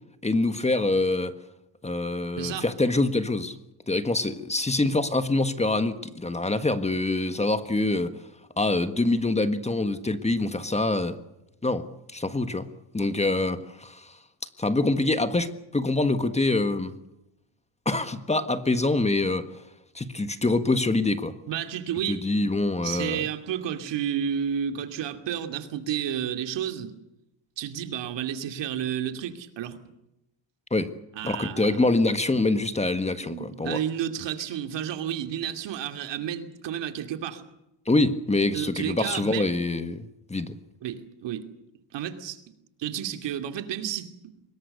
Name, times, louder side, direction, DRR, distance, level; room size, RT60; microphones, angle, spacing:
voice 1, 0.2-1.3 1.8-3.5 3.9-8.2 8.6-11.2 11.6-11.9 12.1-12.7 12.9-14.2 14.6-16.9 17.8-19.5 19.9-21.3 22.1-23.3 30.7-30.9 31.2-33.8 37.9-40.6, left 2 dB, 15° left, 10 dB, 1.6 m, -25 dB
voice 2, 21.5-22.3 22.8-26.9 27.6-29.9 31.1-31.8 33.2-37.4 38.5-39.5 40.8-41.5 41.9-42.4 42.8-44.1, right 9 dB, 70° right, 7 dB, 2.7 m, -31 dB
24.5 x 22.0 x 6.8 m, 0.89 s
cardioid pair, 110°, 44 cm